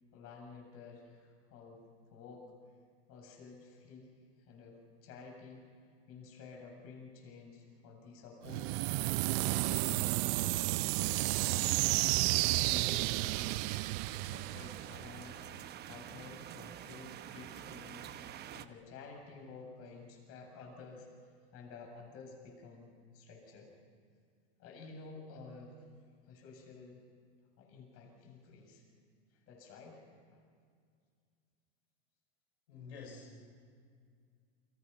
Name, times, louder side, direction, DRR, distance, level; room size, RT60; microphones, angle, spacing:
voice 1, 0.1-1.8 2.1-2.4 3.1-4.1 4.4-5.7 6.1-8.7 9.3-10.6 10.9-12.0 12.6-13.7 14.1-15.4 15.9-21.1 21.5-23.7 24.6-25.9 26.3-27.0 27.6-28.8 29.3-30.0 30.3-30.4, left 4 dB, 45° left, 1 dB, 7.7 m, -52 dB
sound 1, 8.4-15.3, right 21 dB, 50° right, 0.6 m, -32 dB
sound 2, 10.9-18.7, right 11 dB, 30° right, 1.0 m, -48 dB
voice 2, 32.7-33.5, left 4 dB, 80° left, 0 dB, 5.3 m, -49 dB
29.0 x 25.0 x 5.8 m, 2.1 s
supercardioid pair, 125°, 32 cm